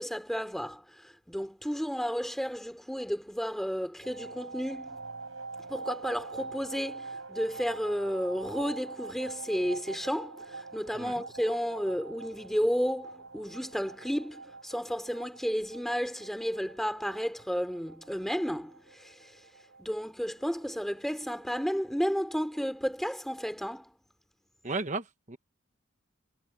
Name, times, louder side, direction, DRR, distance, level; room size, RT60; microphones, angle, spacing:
voice 1, 0.0-5.0 5.7-19.3 19.8-23.9, equal, ahead, 2.9 m, -32 dB
sound 1, 4.0-22.6, right 3 dB, 80° right, 7.0 m, -45 dB
voice 2, 24.6-25.4, right 3 dB, 35° right, 1.0 m, -34 dB
head